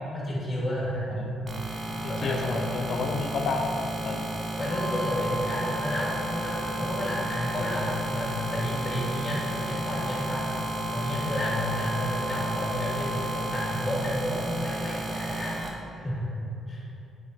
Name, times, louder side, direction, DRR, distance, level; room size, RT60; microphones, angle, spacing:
voice 1, 0.1-1.2 2.1-2.9 4.6-10.5 10.9-16.3 16.7-16.8, left 1 dB, 30° left, -5 dB, 1.4 m, -31 dB
sound 1, 1.5-15.7, right 1 dB, 35° right, 0.6 m, -34 dB
voice 2, 2.0-4.3, left 4 dB, 60° left, 4 dB, 0.3 m, -31 dB
Wind instrument woodwind instrument, 4.5-13.8, equal, ahead, 1.4 m, -37 dB
5.0 x 3.9 x 2.6 m, 2.7 s
cardioid pair, 90°, 0 cm